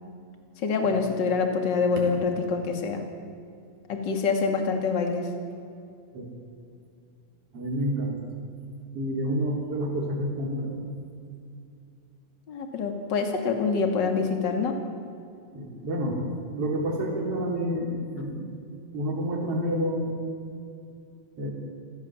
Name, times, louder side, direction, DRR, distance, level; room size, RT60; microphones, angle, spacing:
voice 1, 0.6-3.0 3.9-5.3 12.5-14.8, left 5 dB, 35° left, 4 dB, 2.5 m, -26 dB
voice 2, 7.5-8.2 8.9-10.8 15.5-16.2 16.5-18.4 18.9-20.2 21.4-21.5, equal, 40° right, -1 dB, 4.4 m, -29 dB
27.0 x 16.5 x 7.5 m, 2.4 s
omnidirectional pair, 4.1 m